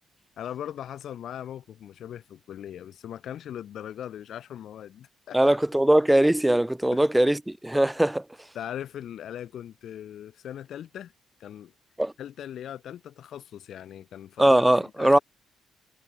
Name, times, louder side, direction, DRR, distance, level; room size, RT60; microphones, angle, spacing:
voice 1, 0.4-5.6 6.9-7.0 8.5-11.1 11.4-11.7 12.2-15.2, left 10 dB, 70° left, 4.9 m, -39 dB
voice 2, 5.3-8.2 12.0-12.1 14.4-15.2, right 1 dB, 5° right, 1.4 m, -21 dB
cardioid pair, 90°, 0 cm